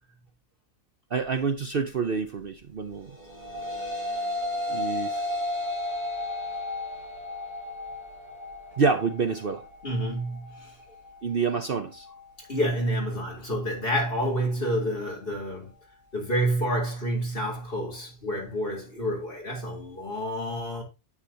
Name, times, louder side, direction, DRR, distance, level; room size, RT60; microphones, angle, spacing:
voice 1, 1.1-3.1 4.7-5.3 8.8-9.7 11.2-12.1, right 5 dB, 50° right, 0.9 m, -27 dB
sound 1, 3.1-12.2, left 1 dB, 25° right, 3.1 m, -34 dB
voice 2, 9.8-10.7 12.5-15.7 16.1-20.8, equal, 40° left, 3.8 m, -29 dB
9.8 x 8.2 x 2.8 m
omnidirectional pair, 1.4 m